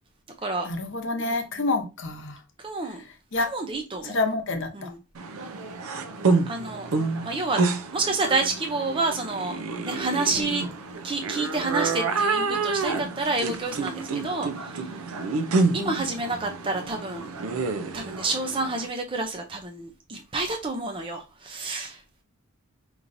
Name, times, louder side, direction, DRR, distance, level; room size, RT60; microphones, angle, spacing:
voice 1, 0.6-2.4 3.3-3.5 4.0-4.9 10.4-10.6 15.8-16.0, left 2 dB, 55° left, 0.8 m, -28 dB
voice 2, 2.6-3.1 3.5-4.2 4.7-5.0 6.5-6.9 7.2-7.6 7.9-9.6 9.8-10.6 11.0-14.9 15.7-17.4 17.9-22.2, right 3 dB, 25° right, 0.5 m, -29 dB
sound 1, 5.1-18.9, right 4 dB, 70° right, 0.5 m, -28 dB
5.3 x 2.9 x 2.6 m
head